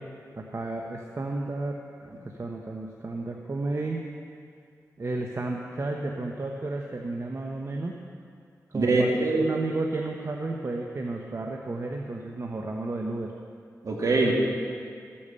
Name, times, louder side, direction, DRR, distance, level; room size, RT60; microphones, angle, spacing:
voice 1, 0.3-4.0 5.0-8.0 8.7-13.3, right 2 dB, 45° right, 1 dB, 1.1 m, -32 dB
voice 2, 8.7-9.6 13.8-14.3, right 2 dB, 65° right, -2 dB, 2.8 m, -23 dB
14.0 x 8.7 x 6.9 m, 2.3 s
cardioid pair, 60°, 6 cm